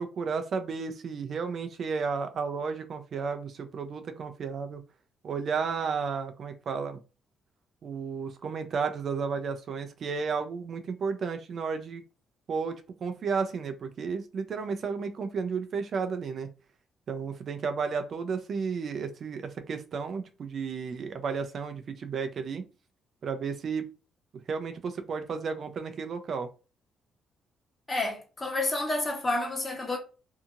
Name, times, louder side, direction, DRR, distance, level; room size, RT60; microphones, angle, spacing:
voice 1, 0.0-4.8 5.2-7.0 7.8-12.0 12.5-16.5 17.1-22.7 23.2-23.9 24.5-26.5, right 5 dB, 55° right, 0.5 m, -33 dB
voice 2, 27.9-30.0, left 2 dB, 25° left, 1.2 m, -29 dB
2.8 x 2.6 x 2.5 m
cardioid pair, 75°, 0 cm